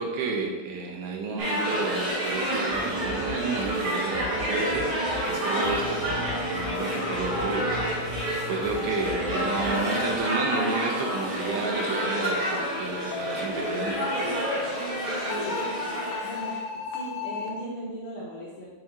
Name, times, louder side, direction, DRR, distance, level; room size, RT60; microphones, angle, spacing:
voice 1, 0.0-14.0, right 4 dB, 75° right, 1 dB, 2.5 m, -31 dB
sound 1, 1.4-16.6, equal, 40° right, 2.2 m, -29 dB
sound 2, 2.7-10.2, right 2 dB, 25° right, 1.1 m, -36 dB
sound 3, 4.4-17.5, left 5 dB, 85° left, 1.8 m, -37 dB
voice 2, 15.2-15.6 16.2-16.6 16.9-18.7, equal, 70° left, -6 dB, 2.0 m, -37 dB
8.1 x 3.3 x 4.2 m, 1.2 s
omnidirectional pair, 4.7 m